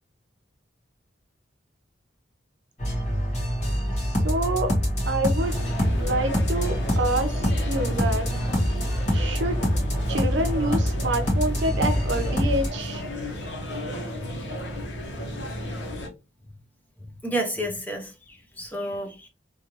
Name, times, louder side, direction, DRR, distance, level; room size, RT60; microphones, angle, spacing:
sound 1, 2.8-12.7, equal, 35° left, 1.1 m, -25 dB
voice 1, 4.0-4.7 5.1-5.6 5.8-8.3 9.1-9.6 10.1-13.0, right 1 dB, 75° right, 0.7 m, -27 dB
sound 2, 5.4-16.1, equal, 75° left, 1.0 m, -34 dB
voice 2, 17.2-19.3, right 1 dB, 10° left, 0.5 m, -31 dB
3.1 x 2.5 x 2.8 m
head